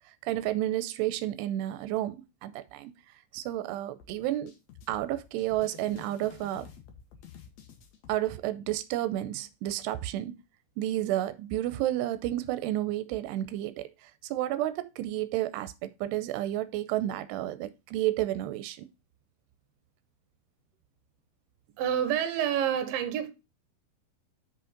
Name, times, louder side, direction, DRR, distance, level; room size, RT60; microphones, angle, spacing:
voice 1, 0.2-2.9 3.3-4.5 4.9-6.7 8.1-10.3 10.8-18.8, right 13 dB, 90° right, 2.7 m, -31 dB
sound 1, 4.0-8.4, left 8 dB, 65° left, 1.7 m, -51 dB
voice 2, 21.8-23.3, right 9 dB, 70° right, 2.6 m, -28 dB
6.3 x 5.1 x 5.0 m
omnidirectional pair, 4.8 m